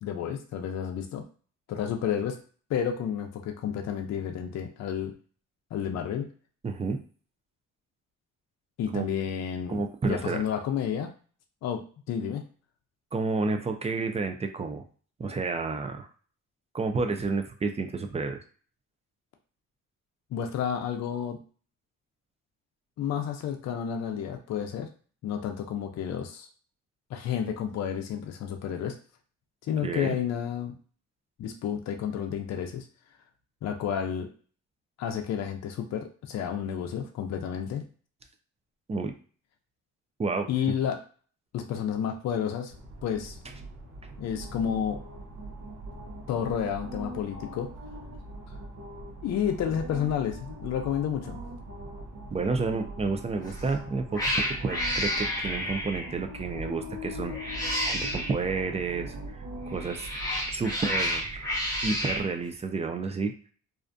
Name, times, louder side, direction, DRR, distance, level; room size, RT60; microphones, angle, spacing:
voice 1, 0.0-1.2 1.7-2.4 2.7-5.1 5.7-6.3 8.8-9.8 10.1-11.1 11.6-12.4 20.3-21.4 23.0-24.9 25.2-26.5 27.1-29.0 29.6-30.7 31.4-32.9 33.6-34.3 35.0-37.8 40.5-41.0 41.5-42.7 43.0-43.4 44.2-45.0 46.3-47.7 49.2-51.4, left 8 dB, 60° left, 4 dB, 0.5 m, -31 dB
voice 2, 6.6-7.0 8.9-9.1 9.7-10.4 13.1-14.8 15.2-16.1 16.7-18.4 29.8-30.2 38.9-39.1 40.2-40.7 52.3-54.2 54.5-60.1 60.5-63.3, right 4 dB, 20° right, 6 dB, 0.4 m, -30 dB
sound 1, 42.7-62.2, right 1 dB, 60° right, 0.8 m, -41 dB
Cat, 53.4-53.7 54.1-56.2 57.3-58.4 59.7-62.3, equal, 10° left, 1.1 m, -30 dB
2.5 x 2.1 x 2.5 m, 0.41 s
cardioid pair, 90°, 30 cm